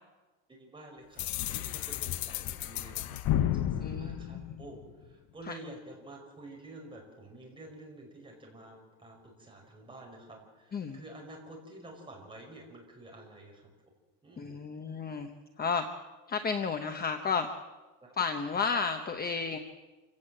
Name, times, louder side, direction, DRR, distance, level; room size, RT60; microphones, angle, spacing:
voice 1, 0.5-13.7 14.2-14.6 18.0-18.1, right 1 dB, 10° right, 0 dB, 5.3 m, -50 dB
sound 1, 1.2-5.0, left 12 dB, 55° left, 0.9 m, -32 dB
voice 2, 3.8-4.6 5.4-5.6 10.7-11.0 14.4-15.3 15.6-15.9 16.3-17.5 18.2-19.6, left 5 dB, 20° left, 6 dB, 1.0 m, -32 dB
27.0 x 17.5 x 7.8 m, 1.2 s
cardioid pair, 180°, 43 cm